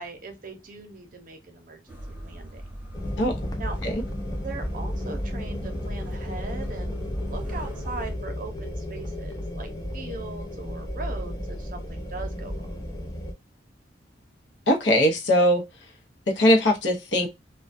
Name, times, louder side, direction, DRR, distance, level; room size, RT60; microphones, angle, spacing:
voice 1, 0.0-2.6 3.6-3.8 4.4-12.7, right 3 dB, 50° right, 0.6 m, -40 dB
sound 1, 1.9-8.1, right 1 dB, 10° right, 0.7 m, -40 dB
sound 2, 2.9-13.3, left 1 dB, 20° left, 0.5 m, -33 dB
voice 2, 14.7-15.6 16.3-17.3, equal, 70° left, 0.7 m, -20 dB
2.2 x 2.2 x 2.5 m
head